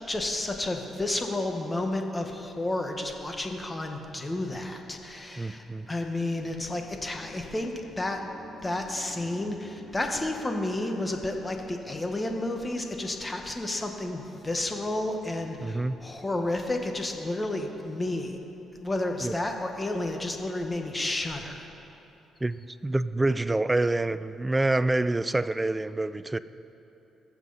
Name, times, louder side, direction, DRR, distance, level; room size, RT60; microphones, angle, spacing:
voice 1, 0.1-8.2 8.6-18.4 18.7-21.6, left 2 dB, 20° left, 1.3 m, -31 dB
voice 2, 5.4-5.9 15.6-16.0 19.2-19.3 22.4-26.4, right 2 dB, 15° right, 0.4 m, -27 dB
sound 1, 5.5-16.5, right 1 dB, 30° right, 2.2 m, -52 dB
20.5 x 7.4 x 4.1 m
cardioid pair, 90°, 0 cm